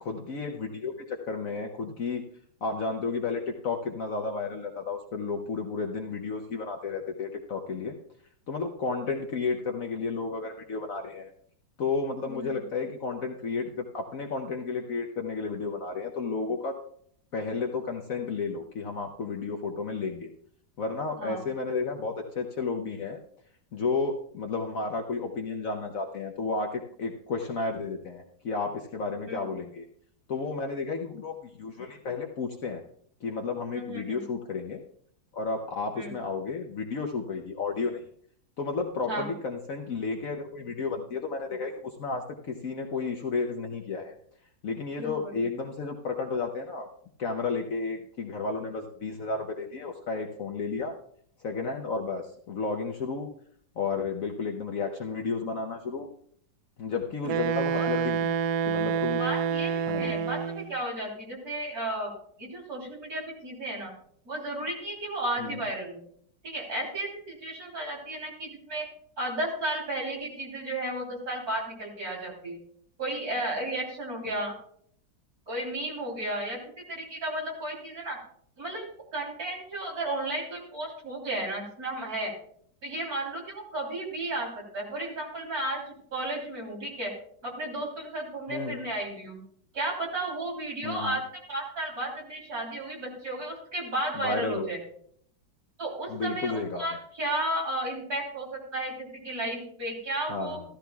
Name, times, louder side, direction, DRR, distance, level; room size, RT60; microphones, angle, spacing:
voice 1, 0.0-2.2 2.6-8.0 8.5-11.3 11.8-16.8 17.3-20.3 20.8-23.2 23.7-29.9 30.3-32.8 33.2-34.8 35.3-38.0 38.6-44.2 44.6-46.9 47.2-50.9 51.4-53.3 53.8-56.1 56.8-58.4 58.6-59.2 59.9-60.2 65.4-65.6 88.5-88.8 90.8-91.2 94.1-94.7 96.1-96.9 100.3-100.6, left 4 dB, 55° left, 3 dB, 1.1 m, -32 dB
voice 2, 12.3-12.6 21.2-21.4 29.3-29.5 33.7-34.2 36.0-36.1 39.1-39.3 45.0-45.3 57.2-57.4 57.7-57.9 59.2-62.1 62.4-63.9 64.3-66.0 66.4-68.9 69.2-72.6 73.0-74.5 75.5-76.6 76.9-78.2 78.6-78.9 79.1-82.3 82.8-87.1 87.4-89.4 89.7-91.2 91.5-94.8 95.8-100.6, right 1 dB, 50° right, -2 dB, 3.8 m, -33 dB
Wind instrument woodwind instrument, 57.3-60.7, right 8 dB, 70° right, 0.9 m, -28 dB
15.0 x 13.5 x 2.3 m, 0.63 s
omnidirectional pair, 2.0 m